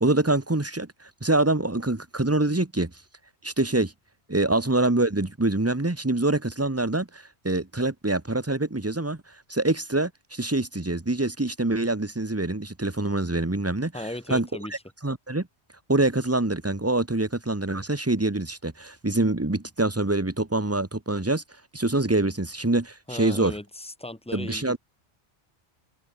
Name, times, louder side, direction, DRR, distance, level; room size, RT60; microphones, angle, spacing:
voice 1, 0.0-2.9 3.4-3.9 4.3-13.9 14.3-14.5 15.0-15.5 15.9-21.4 21.7-23.5 24.3-24.8, right 2 dB, 15° right, 1.2 m, -25 dB
voice 2, 13.9-14.7 23.1-24.8, left 1 dB, 5° left, 2.7 m, -37 dB
omnidirectional pair, 1.1 m